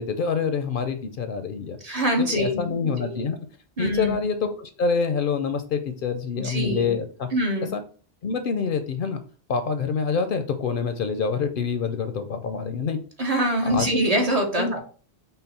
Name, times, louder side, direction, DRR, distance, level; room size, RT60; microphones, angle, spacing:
voice 1, 0.0-1.8 2.2-3.4 3.8-7.3 7.7-7.8 8.2-9.2 9.5-13.0 13.7-13.9 14.5-14.9, left 5 dB, 60° left, 8 dB, 0.6 m, -26 dB
voice 2, 1.8-3.3 3.8-4.2 6.4-6.9 7.3-7.7 13.2-14.9, right 1 dB, 40° right, 2 dB, 0.7 m, -24 dB
5.6 x 2.1 x 4.0 m, 0.41 s
omnidirectional pair, 1.1 m